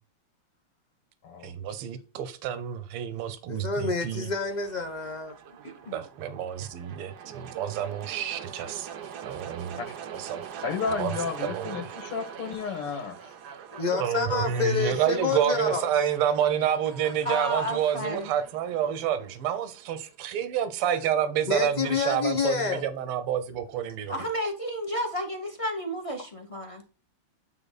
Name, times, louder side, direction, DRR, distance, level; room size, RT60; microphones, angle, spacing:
voice 1, 1.4-4.3 5.9-8.9 9.2-9.8 10.1-10.6 11.0-11.1 11.4-11.9 14.0-24.2, right 9 dB, 80° right, 1.8 m, -29 dB
voice 2, 3.5-5.4 13.2-13.3 13.8-16.1 17.0-17.1 21.5-22.9, left 5 dB, 40° left, 0.6 m, -28 dB
sound 1, 4.1-20.1, right 8 dB, 65° right, 1.1 m, -43 dB
voice 3, 5.6-6.1 17.2-18.3 24.1-26.8, equal, 20° left, 1.1 m, -32 dB
voice 4, 10.6-13.1, left 5 dB, 90° left, 2.5 m, -32 dB
9.1 x 3.9 x 4.0 m
omnidirectional pair, 2.4 m